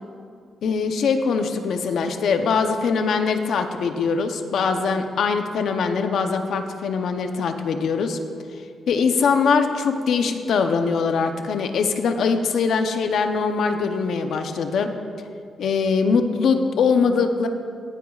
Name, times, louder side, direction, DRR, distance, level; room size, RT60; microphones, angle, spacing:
voice 1, 0.6-8.2 8.9-14.9 15.6-17.5, left 5 dB, 70° left, 6 dB, 0.8 m, -22 dB
17.0 x 10.0 x 2.4 m, 2.3 s
cardioid pair, 115°, 0 cm